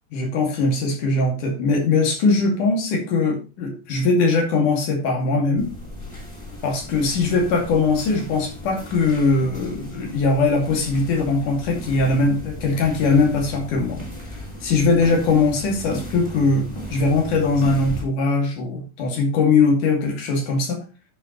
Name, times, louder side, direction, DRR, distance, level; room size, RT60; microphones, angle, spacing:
voice 1, 0.1-5.7 6.6-14.0 14.6-20.8, left 3 dB, 70° left, 2 dB, 3.9 m, -20 dB
sound 1, 5.6-18.0, equal, 10° left, 2.2 m, -36 dB
11.0 x 5.7 x 4.4 m, 0.32 s
omnidirectional pair, 3.8 m